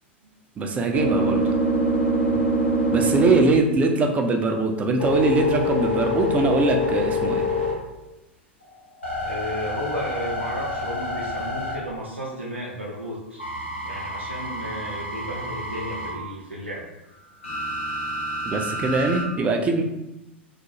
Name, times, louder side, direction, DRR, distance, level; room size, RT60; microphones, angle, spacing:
voice 1, 0.6-1.4 2.9-7.4 18.4-19.8, right 3 dB, 20° right, 3 dB, 0.3 m, -22 dB
sound 1, 0.7-4.1 4.6-8.1 8.6-12.3 13.4-16.2 17.4-19.2, equal, 90° left, 0.8 m, -26 dB
voice 2, 2.1-2.4 9.2-13.4 13.8-16.8, equal, 90° right, -5 dB, 0.4 m, -33 dB
2.4 x 2.1 x 2.8 m, 0.93 s
figure-of-eight pair, 90°, 6 cm